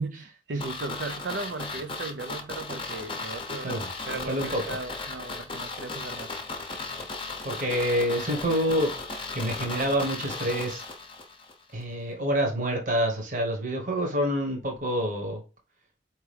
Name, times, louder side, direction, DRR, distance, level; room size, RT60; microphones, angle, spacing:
voice 1, 0.0-6.3, right 3 dB, 80° right, 0.5 m, -36 dB
sound 1, 0.6-11.5 11.8-11.9, left 3 dB, 30° left, 0.7 m, -36 dB
voice 2, 4.3-4.6 7.4-8.9 9.3-10.8 11.7-15.4, equal, 50° right, 1.2 m, -27 dB
4.6 x 3.0 x 3.3 m
head